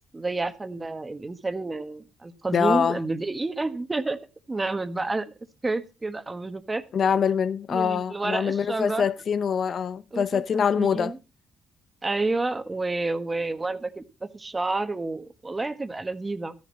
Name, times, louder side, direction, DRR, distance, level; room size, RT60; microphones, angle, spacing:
voice 1, 0.1-4.2 4.5-5.3 5.6-6.8 7.7-9.0 10.1-11.2 12.0-16.5, right 3 dB, 20° right, 1.3 m, -29 dB
voice 2, 2.5-3.0 6.9-11.1, left 7 dB, 55° left, 0.6 m, -24 dB
13.5 x 10.5 x 4.1 m
cardioid pair, 90°, 0 cm